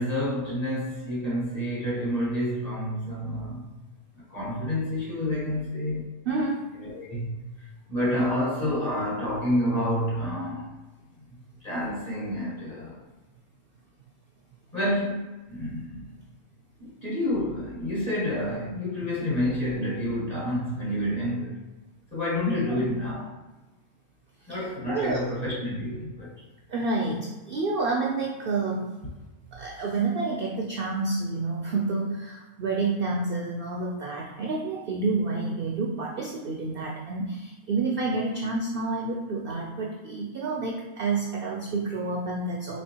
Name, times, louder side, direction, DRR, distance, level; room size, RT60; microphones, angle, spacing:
voice 1, 0.0-3.7 4.3-6.1 6.8-10.7 11.6-13.0 14.7-16.1 16.8-21.6 22.1-23.3 24.5-26.3, left 1 dB, 35° left, -5 dB, 0.7 m, -29 dB
voice 2, 6.3-6.6 22.5-22.9 24.5-25.2 26.7-28.9 29.5-42.8, right 3 dB, 70° right, -1 dB, 0.5 m, -29 dB
4.3 x 2.9 x 2.8 m, 1.1 s
omnidirectional pair, 1.5 m